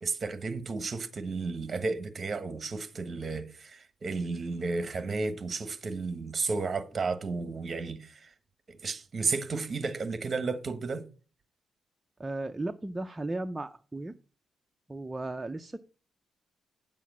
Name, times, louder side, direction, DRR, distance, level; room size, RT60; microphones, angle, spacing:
voice 1, 0.0-8.3 8.7-11.0, right 4 dB, 35° right, 1.2 m, -33 dB
voice 2, 12.2-14.1 14.9-15.8, right 2 dB, 15° right, 0.4 m, -35 dB
9.2 x 7.6 x 6.1 m
cardioid pair, 140°, 0 cm